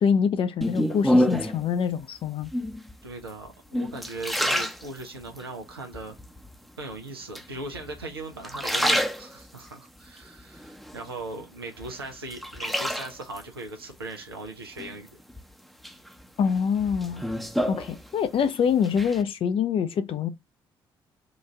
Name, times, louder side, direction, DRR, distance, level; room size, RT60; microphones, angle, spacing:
voice 1, 0.0-2.5 16.4-17.3 17.7-20.3, left 7 dB, 45° left, 0.6 m, -25 dB
sound 1, 0.6-1.7 2.4-2.9 3.5-5.4 5.9-6.5 7.4-8.0 8.4-9.7 10.2-11.4 11.8-13.4 14.8-15.4 15.8-18.5 18.7-19.2, equal, ahead, 0.8 m, -28 dB
voice 2, 3.0-6.2 6.8-15.2 17.6-17.9, right 2 dB, 85° right, 0.7 m, -39 dB
4.0 x 2.5 x 3.2 m
figure-of-eight pair, 40°, 12 cm